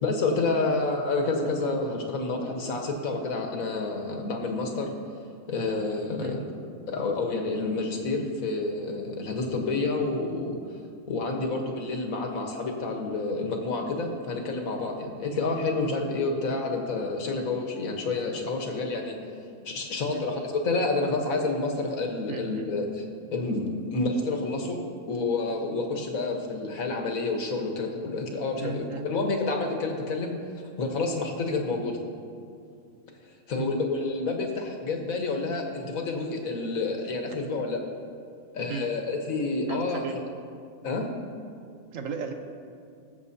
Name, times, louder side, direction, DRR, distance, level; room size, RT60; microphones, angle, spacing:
voice 1, 0.0-4.9 5.5-6.4 6.9-10.6 11.1-19.2 19.6-23.0 23.3-24.8 25.1-30.4 30.8-32.0 33.5-37.8 38.5-40.3 40.8-41.1, left 3 dB, 85° left, 2 dB, 1.6 m, -29 dB
voice 2, 22.3-22.7 28.5-29.3 33.6-33.8 38.7-38.9 39.7-40.2 41.9-42.3, right 5 dB, 75° right, 5 dB, 1.2 m, -36 dB
20.5 x 7.3 x 2.7 m, 2.3 s
omnidirectional pair, 1.4 m